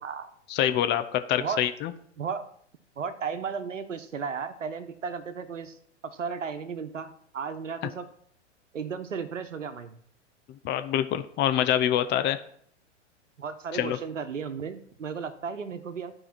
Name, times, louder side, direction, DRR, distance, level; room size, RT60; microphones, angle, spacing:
voice 1, 0.5-1.9 10.5-12.4 13.7-14.0, left 11 dB, 30° left, 10 dB, 0.8 m, -26 dB
voice 2, 3.0-5.8 6.0-8.1 8.7-10.0 13.4-16.1, right 6 dB, 85° right, 10 dB, 1.1 m, -34 dB
12.0 x 4.9 x 5.9 m, 0.63 s
hypercardioid pair, 110°, 36 cm